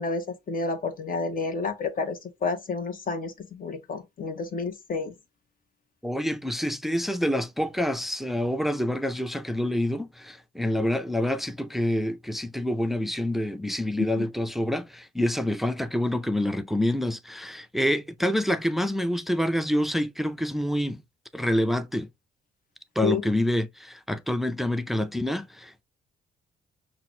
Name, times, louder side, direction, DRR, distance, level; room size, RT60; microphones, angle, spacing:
voice 1, 0.0-5.1 14.2-14.3 23.0-23.2, left 4 dB, 45° left, 1.3 m, -30 dB
voice 2, 6.0-21.0 21.3-22.1 23.0-25.8, left 1 dB, ahead, 0.5 m, -27 dB
5.7 x 2.5 x 3.2 m
cardioid pair, 90°, 20 cm